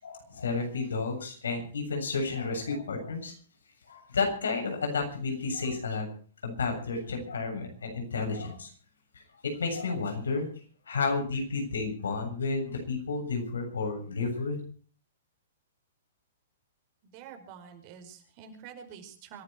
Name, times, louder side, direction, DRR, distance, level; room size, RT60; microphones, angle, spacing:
voice 1, 0.0-3.3 3.9-6.1 6.4-8.7 9.6-10.5 10.9-14.6, left 4 dB, 90° left, 4 dB, 7.5 m, -31 dB
voice 2, 17.0-19.4, right 7 dB, 40° right, 6 dB, 5.0 m, -47 dB
25.5 x 12.0 x 4.5 m, 0.43 s
hypercardioid pair, 135°, 0 cm